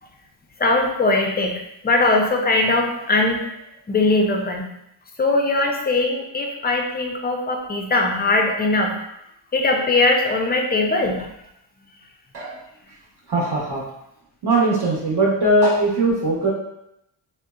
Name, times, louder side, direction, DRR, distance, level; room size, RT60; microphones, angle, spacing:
voice 1, 0.6-1.5 1.8-3.4 3.9-4.6 5.2-8.9 9.5-11.3, left 2 dB, 20° left, 2 dB, 0.4 m, -20 dB
voice 2, 13.3-13.8 14.4-16.5, right 2 dB, 50° right, -5 dB, 0.8 m, -20 dB
2.7 x 2.1 x 2.2 m, 0.81 s
cardioid pair, 60°, 49 cm